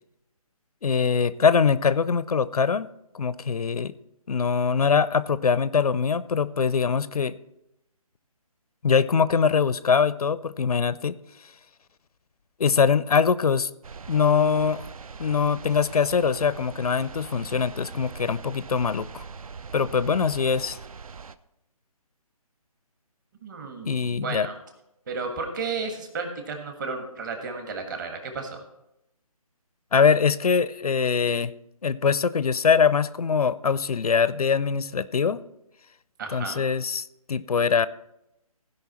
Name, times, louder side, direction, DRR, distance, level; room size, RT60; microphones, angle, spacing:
voice 1, 0.8-2.9 3.1-3.9 4.3-7.3 8.8-11.2 12.6-13.7 14.1-14.9 15.2-19.2 19.7-20.8 23.9-24.5 29.9-31.5 31.8-35.4 36.3-37.9, left 6 dB, 75° left, 17 dB, 0.5 m, -23 dB
sound 1, 13.8-21.4, right 5 dB, 65° right, 0.5 m, -41 dB
voice 2, 23.4-24.6 25.1-28.6 36.2-36.6, right 4 dB, 30° right, 4 dB, 1.5 m, -33 dB
16.0 x 5.4 x 4.3 m, 0.86 s
figure-of-eight pair, 155°, 19 cm